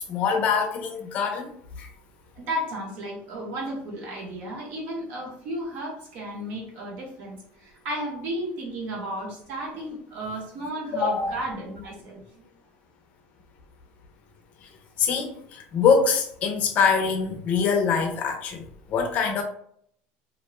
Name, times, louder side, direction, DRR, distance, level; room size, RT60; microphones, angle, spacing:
voice 1, 0.0-1.9 10.9-11.3 15.0-19.4, left 6 dB, 40° left, 4 dB, 0.5 m, -24 dB
voice 2, 2.4-12.4, right 1 dB, 50° right, -2 dB, 0.9 m, -33 dB
2.5 x 2.1 x 3.0 m, 0.63 s
cardioid pair, 165°, 4 cm